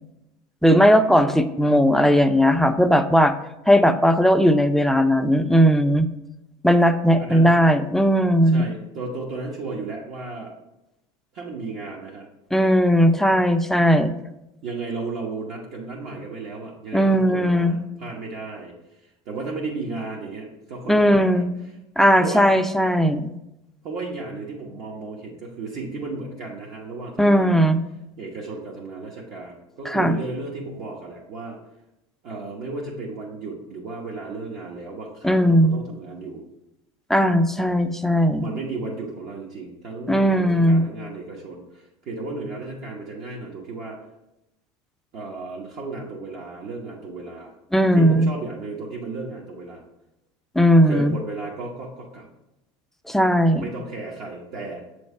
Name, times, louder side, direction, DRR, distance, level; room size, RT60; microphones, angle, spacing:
voice 1, 0.6-3.3 3.7-6.1 6.6-8.7 12.5-14.1 16.9-17.8 20.9-21.4 22.0-23.3 27.2-27.8 29.9-30.1 35.2-35.8 37.1-38.4 40.1-40.8 47.7-48.3 50.6-51.1 53.1-53.6, equal, ahead, 8 dB, 0.3 m, -17 dB
voice 2, 7.2-7.5 8.4-10.5 11.3-12.3 14.6-18.7 19.0-21.5 22.2-22.5 23.8-27.6 28.2-31.6 32.2-36.4 38.4-44.0 45.1-47.5 47.9-49.8 50.8-52.3 53.5-54.8, right 3 dB, 60° right, -3 dB, 1.0 m, -34 dB
7.1 x 3.2 x 4.2 m, 0.91 s
supercardioid pair, 110°, 14 cm